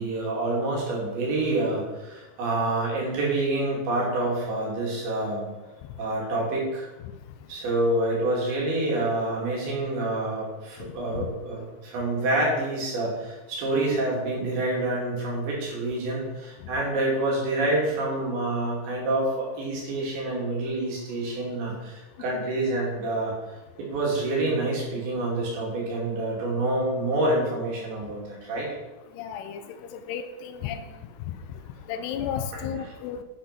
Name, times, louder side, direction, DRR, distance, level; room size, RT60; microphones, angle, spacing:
voice 1, 0.0-5.4 6.0-6.9 7.5-23.3 23.8-28.7, right 2 dB, 90° right, -3 dB, 5.1 m, -27 dB
voice 2, 29.1-30.9 31.9-33.2, left 8 dB, 80° left, 9 dB, 2.7 m, -33 dB
9.8 x 6.1 x 6.0 m, 1.1 s
omnidirectional pair, 4.9 m